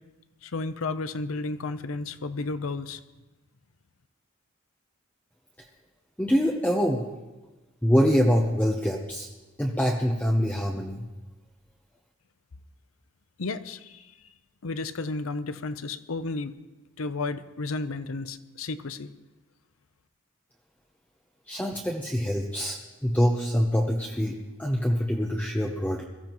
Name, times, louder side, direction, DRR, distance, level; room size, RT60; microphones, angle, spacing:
voice 1, 0.4-3.0 13.4-14.1 14.6-16.5 17.0-19.1, left 3 dB, 85° left, 12 dB, 0.7 m, -32 dB
voice 2, 6.2-7.0 7.8-9.3 9.6-11.1 21.5-26.0, equal, 5° left, 0 dB, 0.8 m, -25 dB
22.5 x 14.5 x 3.0 m, 1.1 s
head